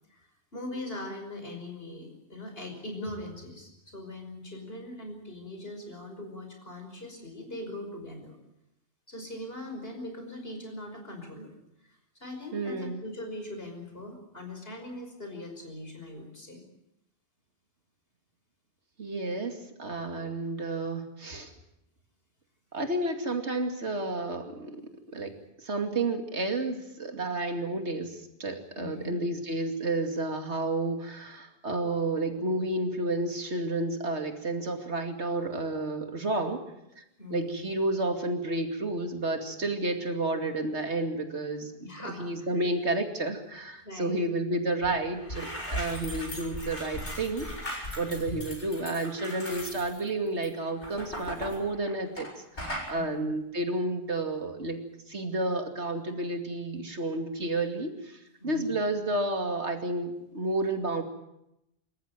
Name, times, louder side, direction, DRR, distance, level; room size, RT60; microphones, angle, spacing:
voice 1, 0.1-8.4 9.1-11.5 11.8-16.6 28.8-29.2 37.2-37.6 41.8-42.6 43.8-44.2 48.0-48.3 52.9-53.3 58.4-58.7, left 1 dB, 60° left, 4 dB, 5.8 m, -41 dB
voice 2, 12.5-13.0 19.0-21.5 22.7-24.8 25.1-25.3 25.6-36.6 37.0-37.1 37.3-41.7 42.0-47.5 47.7-52.3 52.6-54.8 55.1-61.0, right 2 dB, 85° right, 5 dB, 2.8 m, -31 dB
sound 1, 44.8-44.9 45.2-52.3 52.6-52.9, equal, 80° left, 6.3 m, -38 dB
26.5 x 14.5 x 9.2 m, 0.86 s
omnidirectional pair, 1.1 m